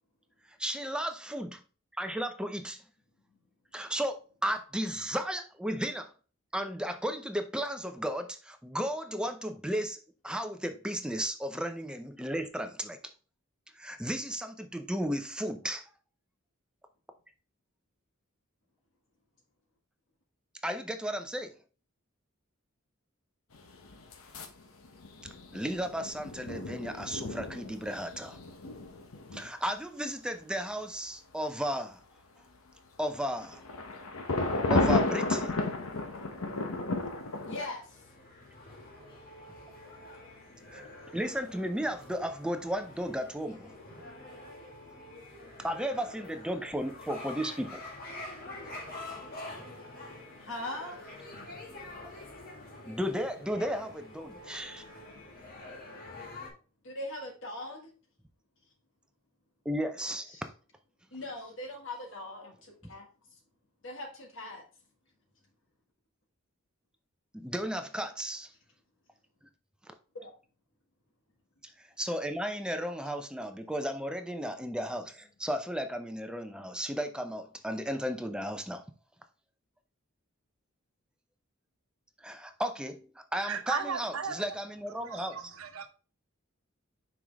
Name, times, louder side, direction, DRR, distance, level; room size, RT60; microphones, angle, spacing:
voice 1, 0.6-1.6 2.0-2.8 3.7-6.1 6.5-13.0 13.8-15.8 20.6-21.5 25.5-28.4 29.3-32.0 33.0-33.6 34.7-35.6 40.7-40.8 41.1-43.8 45.6-47.8 49.5-49.7 52.9-54.8 59.6-60.2 67.3-68.5 69.9-70.0 71.8-78.8 82.2-83.0 83.3-85.4, equal, 5° right, 0.6 m, -34 dB
sound 1, 23.5-24.6 24.8-29.5 33.1-37.6, left 2 dB, 85° left, 0.9 m, -32 dB
voice 2, 37.4-38.0 50.4-51.0 56.8-57.9 60.3-60.4 61.1-63.0 63.8-64.6 70.1-70.3, left 1 dB, 60° left, 1.6 m, -40 dB
sound 2, 37.4-56.5, left 2 dB, 45° left, 1.8 m, -46 dB
voice 3, 83.4-84.4 85.1-85.9, right 5 dB, 85° right, 0.8 m, -35 dB
6.0 x 4.8 x 3.4 m
head